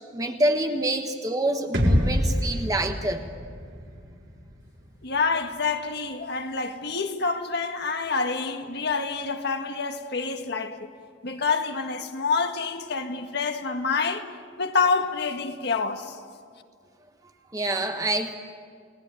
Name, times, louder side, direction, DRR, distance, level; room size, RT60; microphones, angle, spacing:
voice 1, 0.1-3.2 17.5-18.3, right 1 dB, 20° right, 1.3 m, -26 dB
sound 1, 1.7-5.7, equal, 70° right, 4.7 m, -27 dB
voice 2, 5.0-10.9 11.2-14.3 14.6-16.2, left 4 dB, 60° left, 1.8 m, -27 dB
29.5 x 19.5 x 9.1 m
head